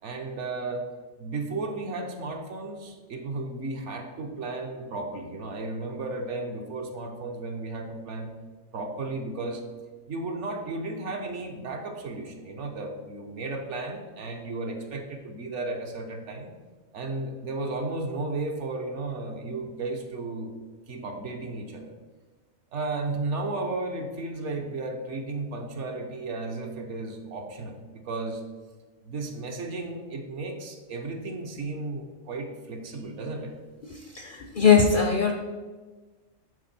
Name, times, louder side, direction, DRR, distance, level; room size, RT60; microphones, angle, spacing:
voice 1, 0.0-0.9 1.2-8.3 8.7-9.6 10.1-16.5 16.9-20.5 20.9-21.9 22.7-28.4 29.0-33.5, right 2 dB, 65° right, 3 dB, 1.1 m, -34 dB
voice 2, 33.8-35.3, left 6 dB, 60° left, 4 dB, 0.5 m, -21 dB
9.3 x 4.0 x 4.2 m, 1.3 s
omnidirectional pair, 1.4 m